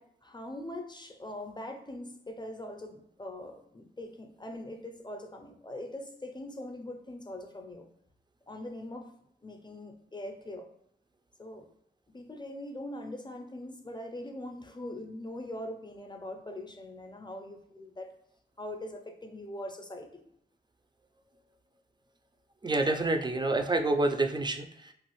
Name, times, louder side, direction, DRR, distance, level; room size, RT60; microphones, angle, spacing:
voice 1, 0.0-7.9 8.5-9.1 9.4-10.7 11.4-11.7 12.1-18.1 18.6-20.3, left 1 dB, 25° left, 3 dB, 0.6 m, -42 dB
voice 2, 22.6-24.9, right 2 dB, 25° right, 6 dB, 0.4 m, -28 dB
3.1 x 2.4 x 3.0 m, 0.75 s
cardioid pair, 55°, 19 cm